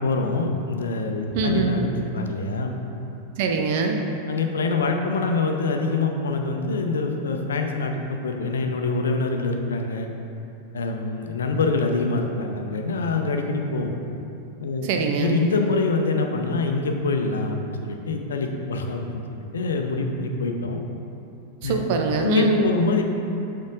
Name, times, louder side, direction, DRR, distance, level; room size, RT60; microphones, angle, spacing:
voice 1, 0.0-1.9 2.1-2.7 4.3-10.1 10.7-13.9 14.6-14.9 15.2-20.8 21.6-21.8 22.2-23.0, left 3 dB, 65° left, 3 dB, 0.6 m, -25 dB
voice 2, 1.3-1.7 3.4-4.0 14.8-15.4 21.6-22.7, right 4 dB, 50° right, 3 dB, 0.6 m, -23 dB
7.2 x 4.7 x 3.8 m, 2.8 s
figure-of-eight pair, 90°, 0 cm